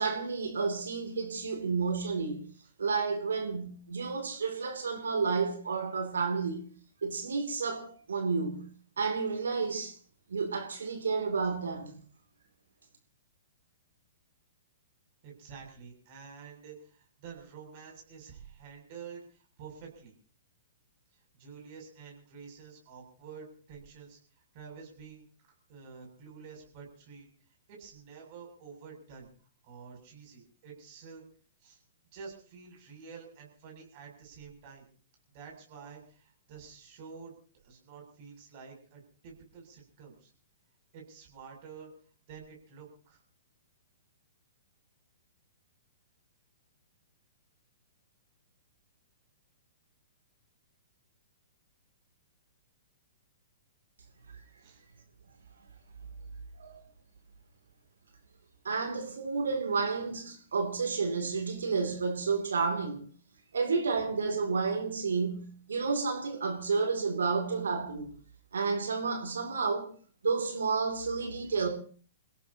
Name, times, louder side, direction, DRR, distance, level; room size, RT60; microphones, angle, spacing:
voice 1, 0.0-2.4 2.8-6.6 7.0-8.7 9.0-9.9 10.3-12.0 56.6-56.8 58.6-63.0 63.5-68.1 68.5-69.9 70.2-71.7, right 4 dB, 65° right, 2.8 m, -31 dB
voice 2, 15.2-20.1 21.4-24.2 24.5-25.2 25.7-27.3 27.7-29.3 29.6-31.2 31.6-31.8 32.1-34.9 35.3-37.3 37.6-40.3 40.9-41.9 42.3-43.2 54.6-54.8, right 6 dB, 40° right, 7.6 m, -49 dB
29.0 x 17.0 x 2.9 m
figure-of-eight pair, 110°, 0 cm